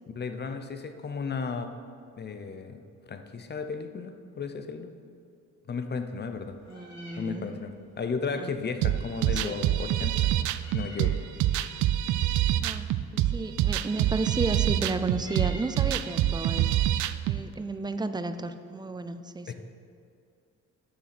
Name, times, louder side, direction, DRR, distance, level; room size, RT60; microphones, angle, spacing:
voice 1, 0.1-1.7 2.2-2.8 3.1-4.9 5.7-6.6 7.2-7.7 8.0-10.3 10.7-11.1 19.5-19.6, left 5 dB, 35° left, 7 dB, 0.7 m, -34 dB
Meow, 6.2-16.4, left 1 dB, 65° left, 2.4 m, -53 dB
voice 2, 6.7-7.5 8.4-8.5 9.3-9.6 12.6-16.8 17.3-19.5, right 3 dB, 15° right, 11 dB, 0.5 m, -33 dB
sound 1, 8.8-17.4, right 13 dB, 75° right, 0.4 m, -26 dB
7.7 x 7.0 x 6.0 m, 2.5 s
cardioid pair, 90°, 30 cm